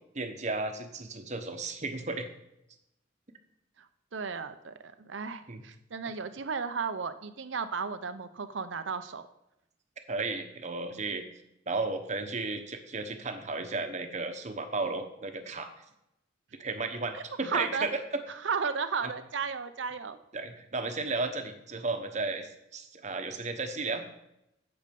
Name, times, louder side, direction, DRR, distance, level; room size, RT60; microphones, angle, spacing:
voice 1, 0.0-2.3 5.5-5.6 10.1-11.2 11.7-15.7 16.6-18.0 20.3-24.0, right 3 dB, 40° right, 7 dB, 1.0 m, -34 dB
voice 2, 3.8-9.2 17.1-17.9 18.3-20.2, right 5 dB, 70° right, 11 dB, 0.6 m, -34 dB
8.4 x 8.0 x 5.3 m, 0.85 s
head